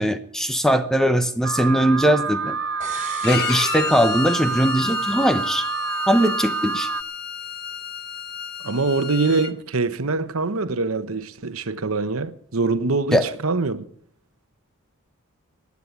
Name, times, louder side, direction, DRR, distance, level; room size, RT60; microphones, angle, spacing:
voice 1, 0.0-2.6 3.2-5.6 6.1-6.9 13.1-13.2, equal, ahead, 0.9 m, -20 dB
Alarm, 1.4-7.0, right 4 dB, 55° right, 0.6 m, -27 dB
sound 1, 2.8-4.7 5.0-5.1, right 5 dB, 35° right, 5.0 m, -39 dB
Bowed string instrument, 3.2-9.5, left 8 dB, 50° left, 0.9 m, -32 dB
voice 2, 8.6-13.8, right 3 dB, 75° right, 1.0 m, -24 dB
15.5 x 9.6 x 8.3 m
head